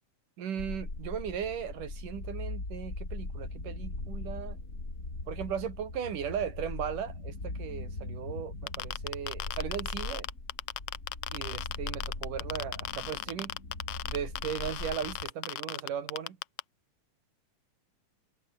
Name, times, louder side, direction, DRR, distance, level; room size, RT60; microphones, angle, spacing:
voice 1, 0.4-4.6 5.3-10.3 11.3-13.5 14.1-16.4, right 8 dB, 90° right, 4.1 m, -37 dB
sound 1, 0.6-15.3, left 2 dB, 25° left, 5.5 m, -40 dB
sound 2, 8.7-16.6, left 15 dB, 85° left, 1.3 m, -36 dB
omnidirectional pair, 3.6 m